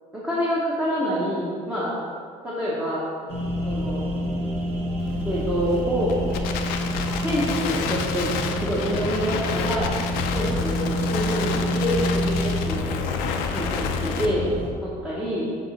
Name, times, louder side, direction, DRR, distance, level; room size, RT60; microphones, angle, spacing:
voice 1, 0.1-1.9 2.4-3.0 3.6-4.0 5.3-6.2 7.1-9.9 10.3-13.0 13.5-14.5 14.8-15.5, equal, 5° right, -9 dB, 0.9 m, -27 dB
sound 1, 3.3-14.7, left 1 dB, 40° right, 1.2 m, -28 dB
Crackle, 5.0-14.3, left 6 dB, 90° left, 0.6 m, -31 dB
7.6 x 3.0 x 5.6 m, 2.2 s
cardioid pair, 180°, 15 cm